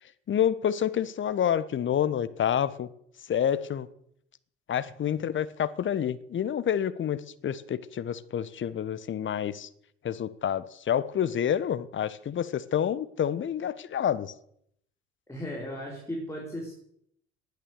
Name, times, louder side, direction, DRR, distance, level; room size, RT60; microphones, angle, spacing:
voice 1, 0.3-2.9 3.3-3.9 4.7-9.7 10.0-14.3, left 9 dB, 35° left, 14 dB, 1.2 m, -28 dB
voice 2, 15.3-16.7, equal, 10° left, -2 dB, 5.6 m, -36 dB
19.0 x 10.5 x 6.7 m, 0.70 s
figure-of-eight pair, 60°, 35 cm